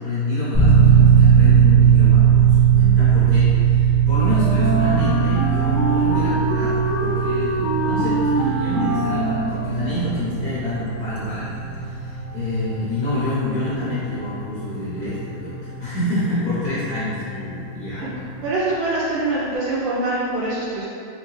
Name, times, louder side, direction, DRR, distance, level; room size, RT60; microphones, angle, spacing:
voice 1, 0.0-15.5 15.8-18.0, left 1 dB, 55° left, -12 dB, 1.3 m, -27 dB
sound 1, 0.5-17.3, right 8 dB, 15° left, 1.0 m, -19 dB
Wind instrument woodwind instrument, 4.2-10.1, right 1 dB, 25° right, 1.2 m, -24 dB
sound 2, 9.9-18.4, left 4 dB, 90° left, 1.4 m, -39 dB
voice 2, 18.4-20.8, right 2 dB, 85° right, -9 dB, 1.5 m, -24 dB
3.6 x 3.2 x 3.2 m, 2.6 s
omnidirectional pair, 2.1 m